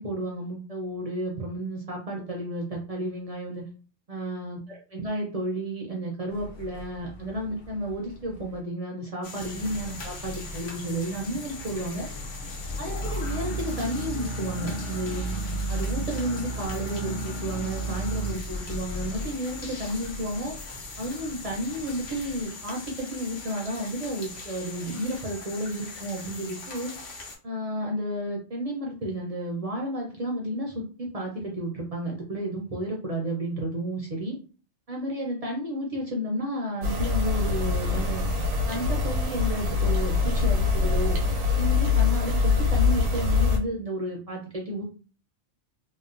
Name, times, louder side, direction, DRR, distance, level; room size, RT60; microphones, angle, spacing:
voice 1, 0.0-3.7 4.1-12.1 12.8-15.3 15.7-20.5 21.0-26.9 27.4-34.4 34.9-38.2 38.7-41.2 41.6-44.8, right 1 dB, 60° right, -1 dB, 0.3 m, -32 dB
sound 1, 6.3-8.6 9.4-22.5, right 1 dB, 50° left, 0.7 m, -35 dB
sound 2, 9.2-27.4, left 3 dB, 70° left, 1.1 m, -41 dB
sound 3, 36.8-43.6, left 4 dB, 85° right, 1.1 m, -24 dB
2.9 x 2.0 x 2.4 m, 0.37 s
omnidirectional pair, 1.3 m